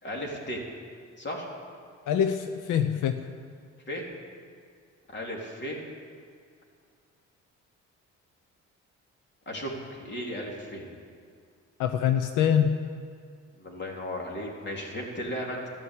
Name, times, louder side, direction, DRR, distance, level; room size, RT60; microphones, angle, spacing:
voice 1, 0.0-0.7 1.2-1.5 3.9-4.1 5.1-5.8 9.5-10.9 13.6-15.7, equal, 35° left, -1 dB, 3.6 m, -35 dB
voice 2, 2.1-3.2 11.8-12.8, left 8 dB, 90° left, 8 dB, 0.8 m, -24 dB
14.5 x 11.0 x 8.6 m, 2.2 s
cardioid pair, 90°, 30 cm